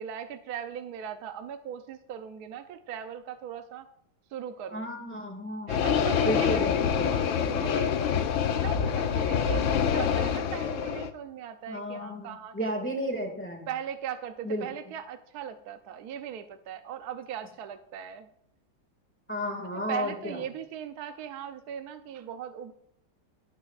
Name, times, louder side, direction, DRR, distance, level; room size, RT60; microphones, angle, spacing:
voice 1, 0.0-3.9 4.3-4.9 5.7-8.1 8.5-13.0 13.7-18.3 19.9-22.7, right 9 dB, 70° right, 8 dB, 1.1 m, -39 dB
voice 2, 4.7-5.8 6.2-7.3 11.7-13.7 14.4-14.6 19.3-20.4, equal, 5° left, 2 dB, 1.8 m, -33 dB
sound 1, 5.7-11.1, left 7 dB, 60° left, 0.9 m, -26 dB
18.0 x 9.2 x 2.4 m, 0.72 s
omnidirectional pair, 1.8 m